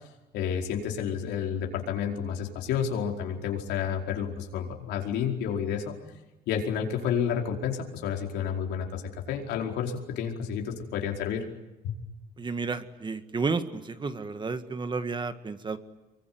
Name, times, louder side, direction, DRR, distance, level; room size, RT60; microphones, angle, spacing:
voice 1, 0.3-5.9 6.5-9.0 9.3-11.5 11.8-11.9, left 8 dB, 85° left, 2 dB, 4.9 m, -30 dB
voice 2, 12.4-15.8, right 4 dB, 25° right, 10 dB, 1.9 m, -31 dB
25.5 x 23.5 x 9.6 m, 1.1 s
cardioid pair, 110°, 17 cm